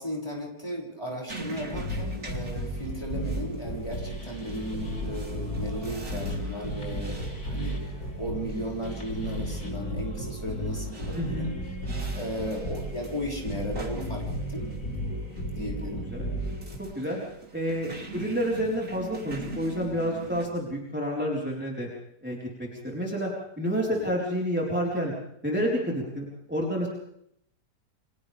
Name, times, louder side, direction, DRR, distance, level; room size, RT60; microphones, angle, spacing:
voice 1, 0.0-7.9 8.2-11.5 12.1-14.7 15.5-16.1 17.9-18.0 23.9-24.1, equal, 15° left, -2 dB, 6.5 m, -36 dB
sound 1, 1.3-20.5, right 2 dB, 50° right, 4.0 m, -45 dB
sound 2, 1.6-16.8, equal, 65° left, 5.6 m, -34 dB
voice 2, 11.1-11.5 16.1-16.3 16.8-17.2 17.5-21.9 22.2-23.3 23.6-25.1 25.4-26.9, equal, 5° right, -3 dB, 4.2 m, -29 dB
30.0 x 26.0 x 3.5 m, 0.71 s
omnidirectional pair, 1.7 m